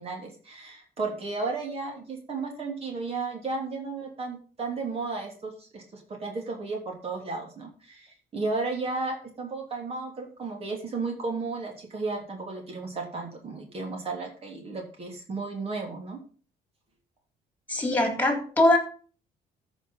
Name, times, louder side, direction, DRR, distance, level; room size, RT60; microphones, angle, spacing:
voice 1, 0.0-16.2, right 3 dB, 35° right, 1 dB, 3.3 m, -34 dB
voice 2, 17.7-18.8, left 1 dB, 10° left, 5 dB, 3.4 m, -22 dB
14.0 x 5.6 x 5.7 m, 0.40 s
cardioid pair, 110°, 17 cm